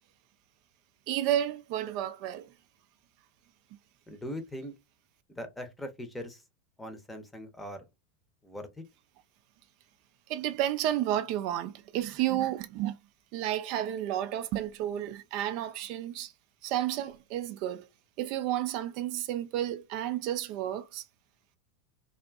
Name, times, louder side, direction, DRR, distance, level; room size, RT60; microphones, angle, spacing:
voice 1, 1.1-2.5 10.3-13.0 13.3-16.3 16.6-17.9 18.2-21.1, right 12 dB, 55° right, 0.3 m, -31 dB
voice 2, 4.1-4.7 5.3-6.4 6.8-7.8 8.4-8.7, equal, 10° left, 0.7 m, -40 dB
2.5 x 2.4 x 2.2 m
hypercardioid pair, 90°, 0 cm